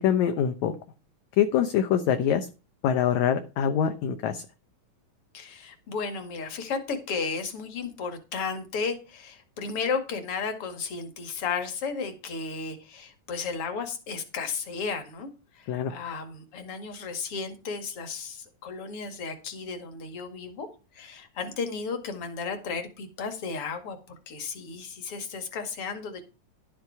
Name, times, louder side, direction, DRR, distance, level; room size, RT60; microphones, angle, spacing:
voice 1, 0.0-0.7 1.4-2.5 2.8-4.4 15.7-15.9, left 9 dB, 70° left, 8 dB, 2.2 m, -24 dB
voice 2, 5.3-15.3 15.6-20.7 20.9-24.0 24.3-26.2, left 5 dB, 45° left, 7 dB, 2.7 m, -34 dB
12.0 x 7.7 x 4.8 m, 0.31 s
omnidirectional pair, 3.8 m